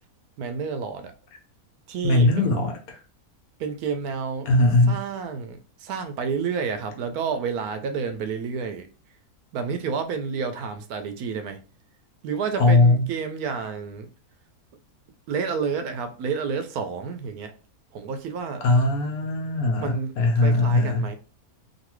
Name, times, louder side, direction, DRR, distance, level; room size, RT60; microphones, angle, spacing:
voice 1, 0.4-1.1 1.9-2.5 3.6-4.5 4.8-8.9 9.5-11.6 12.2-14.1 15.3-17.5 17.9-18.6 19.8-21.2, right 6 dB, 85° right, 1.1 m, -30 dB
voice 2, 2.0-3.0 4.5-4.9 12.6-13.0 18.6-21.1, left 2 dB, 75° left, 1.3 m, -20 dB
3.0 x 2.6 x 3.0 m
omnidirectional pair, 1.6 m